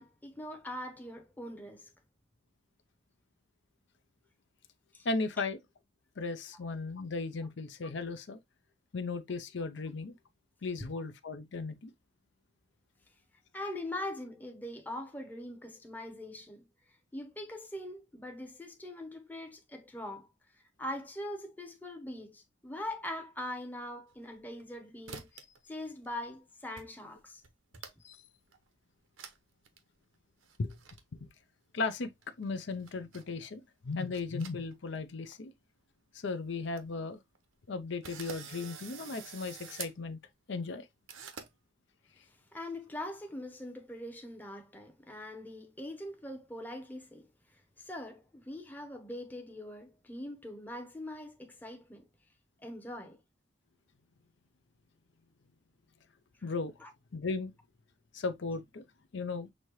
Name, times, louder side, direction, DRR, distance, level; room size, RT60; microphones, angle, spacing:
voice 1, 0.0-1.9 4.9-5.1 13.5-16.7 17.1-20.3 20.8-25.3 25.7-27.4 42.3-52.1 52.6-53.2 56.4-56.5 56.8-56.9, left 1 dB, 10° left, 0.8 m, -42 dB
voice 2, 5.0-5.6 6.2-8.4 8.9-10.2 10.6-11.9 28.0-28.2 30.6-30.8 31.7-32.1 32.4-35.5 36.1-37.2 37.7-40.2 40.5-40.9 56.4-56.7 57.1-57.5 58.1-58.8 59.1-59.5, left 3 dB, 60° left, 0.5 m, -36 dB
sound 1, 24.1-24.7 25.1-25.6 25.8-26.4 26.8-26.9 27.2-28.2 28.5-28.6 29.2-29.4 29.6-29.8 30.4-31.0 32.2-33.3 33.9-35.0 35.2-35.4 35.9-36.0 36.3-36.4 36.6-36.8 37.3-37.4 38.0-40.0 41.1-41.5, right 6 dB, 80° right, 0.9 m, -47 dB
6.2 x 2.7 x 3.0 m
head